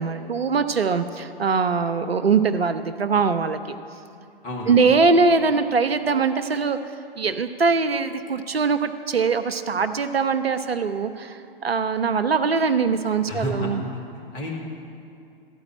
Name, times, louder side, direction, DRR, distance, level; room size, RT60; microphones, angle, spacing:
voice 1, 0.0-3.8 4.7-13.8, right 4 dB, 80° right, 10 dB, 0.6 m, -22 dB
voice 2, 4.4-5.0 13.3-13.7 14.1-14.6, left 1 dB, 25° left, -3 dB, 2.2 m, -31 dB
13.0 x 4.9 x 8.4 m, 2.5 s
figure-of-eight pair, 110°, 30 cm